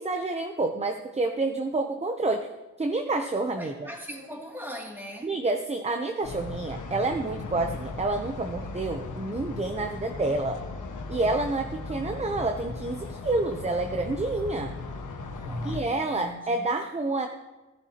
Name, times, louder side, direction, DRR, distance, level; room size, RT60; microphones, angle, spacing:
voice 1, 0.0-2.5 2.8-3.7 5.2-10.6 11.1-14.7 15.6-17.3, right 2 dB, 20° right, 6 dB, 0.6 m, -28 dB
voice 2, 3.6-5.3 15.3-16.7, left 1 dB, 5° right, -2 dB, 2.5 m, -41 dB
sound 1, 6.2-15.8, left 3 dB, 90° left, 1.4 m, -37 dB
16.5 x 11.5 x 2.9 m, 1.2 s
wide cardioid pair, 130°, 30 cm